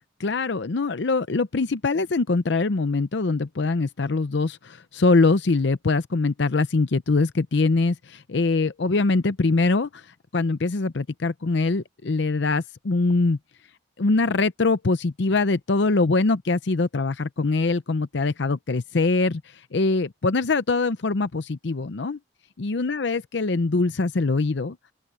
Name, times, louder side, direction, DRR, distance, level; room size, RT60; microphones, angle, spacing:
voice 1, 0.2-13.4 14.0-22.2 22.6-24.8, left 3 dB, 65° left, 0.7 m, -23 dB
open air
head